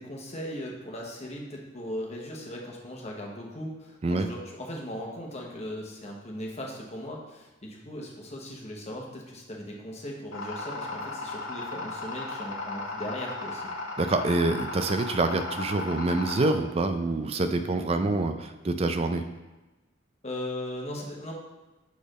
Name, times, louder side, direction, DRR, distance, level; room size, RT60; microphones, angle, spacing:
voice 1, 0.0-13.7 20.2-21.3, left 1 dB, 35° left, -1 dB, 1.0 m, -38 dB
sound 1, 10.3-16.5, left 2 dB, 85° left, 0.8 m, -36 dB
voice 2, 14.0-19.2, right 2 dB, 30° right, 8 dB, 0.4 m, -26 dB
6.4 x 3.5 x 5.0 m, 1.1 s
head